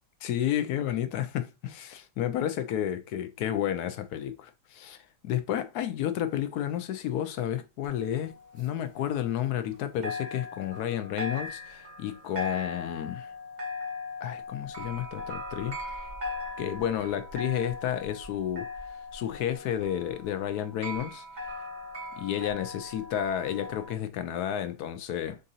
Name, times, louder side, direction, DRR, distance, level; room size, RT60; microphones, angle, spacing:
voice 1, 0.2-5.0 5.2-13.3 14.2-15.8 16.6-18.7 19.1-21.2 22.2-25.4, left 10 dB, 75° left, 1.1 m, -31 dB
sound 1, 7.8-9.8 10.0-23.9, left 2 dB, 40° right, 0.7 m, -39 dB
6.5 x 2.7 x 2.7 m
omnidirectional pair, 1.8 m